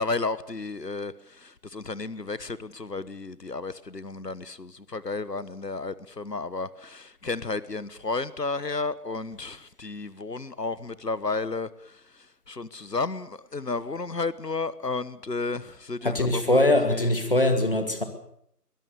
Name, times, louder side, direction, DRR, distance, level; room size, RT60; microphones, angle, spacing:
voice 1, 0.0-11.7 12.5-17.1, left 3 dB, 85° left, 1.3 m, -32 dB
voice 2, 16.0-18.0, left 1 dB, 35° left, 2.2 m, -22 dB
22.5 x 17.5 x 6.8 m
figure-of-eight pair, 170°, 48 cm